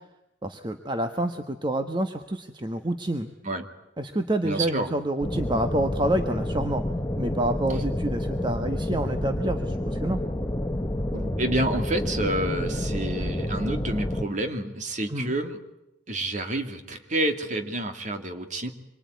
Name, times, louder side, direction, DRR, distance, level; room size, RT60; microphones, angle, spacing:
voice 1, 0.4-3.3 4.0-6.8 7.2-10.2 15.1-15.3, right 1 dB, 25° right, 6 dB, 1.3 m, -28 dB
voice 2, 4.4-4.9 11.1-15.6 16.1-18.7, right 1 dB, 45° right, 6 dB, 2.7 m, -29 dB
sound 1, 5.2-14.2, left 1 dB, 15° left, 1.2 m, -29 dB
26.0 x 24.0 x 9.5 m, 0.91 s
head